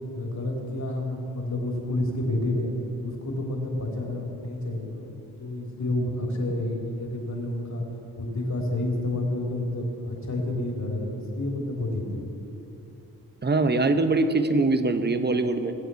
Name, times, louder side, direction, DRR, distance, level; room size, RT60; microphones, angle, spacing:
voice 1, 0.1-2.7 3.0-7.8 8.2-12.2, left 1 dB, 45° left, -1 dB, 3.6 m, -29 dB
voice 2, 13.4-15.7, right 3 dB, 25° right, 9 dB, 1.0 m, -23 dB
19.0 x 7.9 x 7.1 m, 3.0 s
cardioid pair, 55°, 38 cm